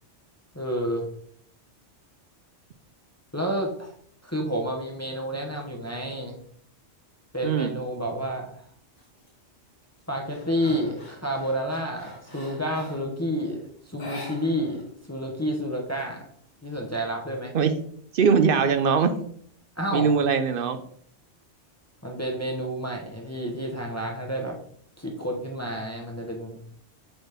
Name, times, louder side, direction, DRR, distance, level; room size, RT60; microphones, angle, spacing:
voice 1, 0.5-1.1 3.3-3.9 4.2-6.4 7.3-8.6 10.1-16.3 16.6-17.5 19.8-20.1 22.0-24.6 25.0-26.6, equal, 15° left, 0 dB, 0.9 m, -30 dB
sound 1, 9.0-9.3 9.7-13.2 13.9-14.9 15.1-15.2 15.6-16.6, equal, 90° left, 2.6 m, -44 dB
voice 2, 18.1-19.2 19.9-20.8, right 6 dB, 55° right, 9 dB, 0.8 m, -21 dB
7.8 x 4.1 x 3.5 m, 0.62 s
omnidirectional pair, 1.2 m